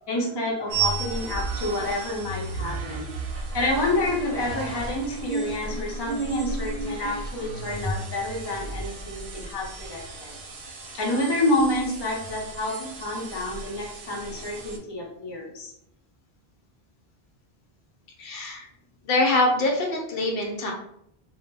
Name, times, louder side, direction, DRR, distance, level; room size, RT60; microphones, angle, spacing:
voice 1, 0.0-3.1 3.5-10.3 10.7-15.7, left 1 dB, 30° left, -2 dB, 0.5 m, -28 dB
sound 1, 0.7-14.8, right 3 dB, 85° right, 0.8 m, -33 dB
voice 2, 18.2-18.7 19.0-20.7, left 2 dB, 70° left, 0 dB, 0.7 m, -24 dB
2.1 x 2.1 x 3.3 m, 0.73 s
omnidirectional pair, 1.0 m